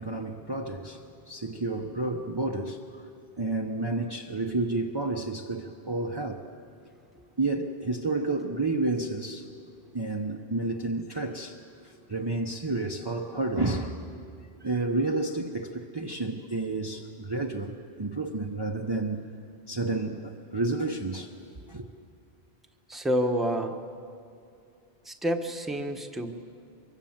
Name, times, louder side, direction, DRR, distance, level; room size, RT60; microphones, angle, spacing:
voice 1, 0.0-3.0 3.4-6.4 7.4-9.5 9.9-11.6 11.8-14.1 14.6-19.3 19.7-21.3 21.7-21.8, right 2 dB, 25° right, 1 dB, 0.9 m, -30 dB
voice 2, 22.9-23.8 25.0-26.3, equal, ahead, 3 dB, 1.2 m, -28 dB
24.5 x 23.5 x 7.4 m, 2.5 s
omnidirectional pair, 1.1 m